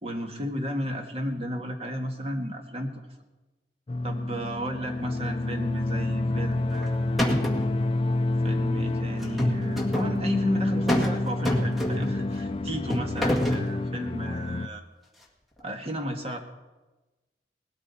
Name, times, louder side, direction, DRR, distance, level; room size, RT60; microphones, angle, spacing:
voice 1, 0.0-2.9 4.0-7.3 8.4-14.9 15.6-16.4, equal, 35° right, 4 dB, 1.7 m, -33 dB
sound 1, 3.9-14.7, left 2 dB, 30° left, 0.4 m, -28 dB
sound 2, 6.5-6.9 7.2-7.7 9.2-10.1 10.9-11.2 11.5-12.2 12.9-13.7, equal, ahead, 1.8 m, -26 dB
19.0 x 13.0 x 4.2 m, 1.1 s
head